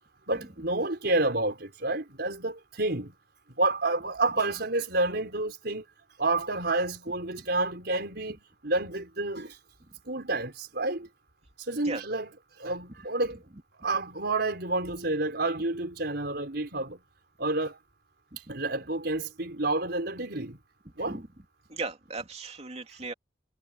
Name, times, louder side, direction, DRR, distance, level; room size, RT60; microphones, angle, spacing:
voice 1, 0.3-3.1 3.6-5.8 6.2-9.6 10.1-11.1 11.7-12.3 12.6-13.4 13.8-17.0 17.4-17.8 18.5-20.6 20.9-21.2, right 2 dB, 65° right, 5.3 m, -29 dB
voice 2, 21.7-23.1, right 3 dB, 35° right, 2.8 m, -37 dB
head